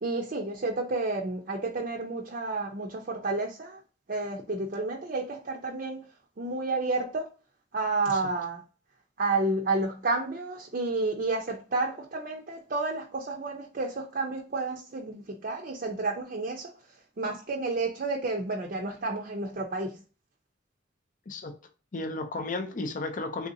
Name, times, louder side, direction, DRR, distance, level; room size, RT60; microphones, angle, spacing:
voice 1, 0.0-3.8 4.1-6.0 6.4-7.3 7.7-8.6 9.2-16.7 17.2-20.0, right 3 dB, 45° right, 0.5 m, -30 dB
voice 2, 21.9-23.5, left 2 dB, 40° left, 0.5 m, -33 dB
3.6 x 2.7 x 2.6 m
head